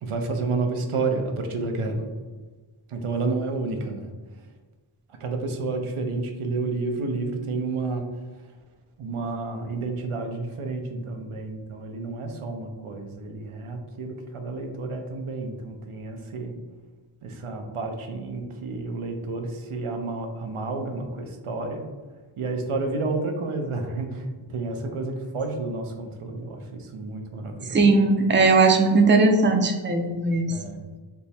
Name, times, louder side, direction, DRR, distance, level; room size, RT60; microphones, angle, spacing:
voice 1, 0.0-2.1 2.9-4.1 4.4-4.5 5.1-8.1 8.4-8.5 9.0-16.6 17.2-21.9 22.4-27.8 28.1-28.2 30.5-30.9, right 3 dB, 85° right, 4 dB, 0.6 m, -30 dB
voice 2, 27.7-30.5, right 3 dB, 25° right, 4 dB, 0.5 m, -18 dB
3.4 x 2.1 x 4.1 m, 1.3 s
wide cardioid pair, 45°, 49 cm